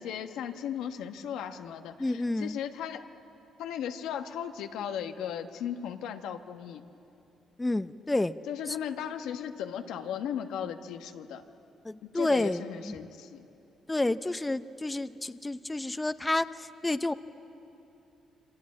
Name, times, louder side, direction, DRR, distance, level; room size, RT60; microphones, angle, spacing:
voice 1, 0.0-3.0 3.6-6.8 8.5-11.4 12.0-13.5, left 9 dB, 90° left, 6 dB, 1.4 m, -36 dB
voice 2, 2.0-2.6 7.6-8.4 8.7-8.8 11.8-12.9 13.9-17.1, left 2 dB, 15° left, 12 dB, 0.7 m, -30 dB
27.0 x 25.5 x 8.6 m, 2.8 s
cardioid pair, 90°, 0 cm